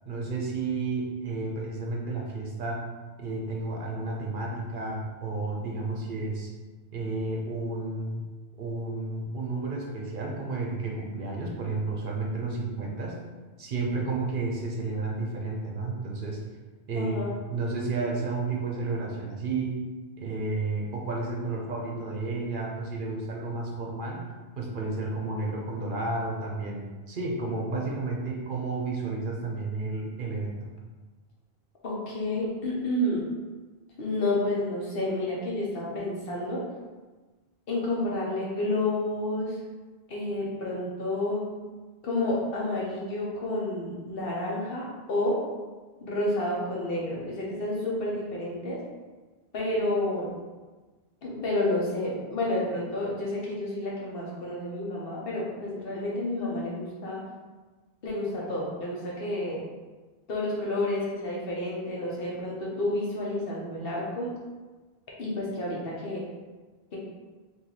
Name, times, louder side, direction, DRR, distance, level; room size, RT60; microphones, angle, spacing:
voice 1, 0.1-2.9 3.2-6.5 6.9-8.3 8.6-13.2 13.6-16.4 16.9-17.2 17.5-19.8 20.2-24.3 24.6-30.7, right 3 dB, 60° right, -1 dB, 0.8 m, -32 dB
voice 2, 17.0-17.3 31.8-33.2 34.0-36.6 37.7-39.6 40.1-41.5 42.0-45.4 46.0-48.8 49.5-50.3 51.2-57.2 58.0-59.6 60.3-64.3 65.2-66.2, left 1 dB, 70° left, -4 dB, 1.1 m, -30 dB
3.0 x 2.7 x 3.9 m, 1.3 s
omnidirectional pair, 1.0 m